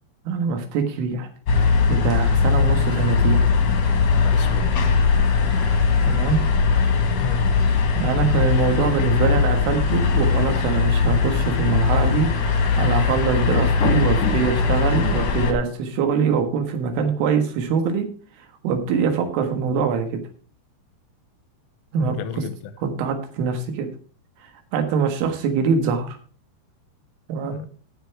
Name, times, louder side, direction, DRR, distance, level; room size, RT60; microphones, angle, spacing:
voice 1, 0.3-1.3 1.9-3.4 6.0-6.4 8.0-12.3 12.8-18.1 18.6-20.2 21.9-22.4 22.8-23.9 24.7-26.2 27.3-27.6, right 5 dB, 80° right, 6 dB, 4.1 m, -23 dB
sound 1, 1.5-15.5, left 5 dB, 55° left, 1.9 m, -20 dB
voice 2, 4.1-4.9 7.2-7.5 22.0-22.5 27.4-27.7, left 9 dB, 90° left, 11 dB, 3.5 m, -32 dB
16.0 x 5.8 x 4.7 m, 0.42 s
omnidirectional pair, 5.6 m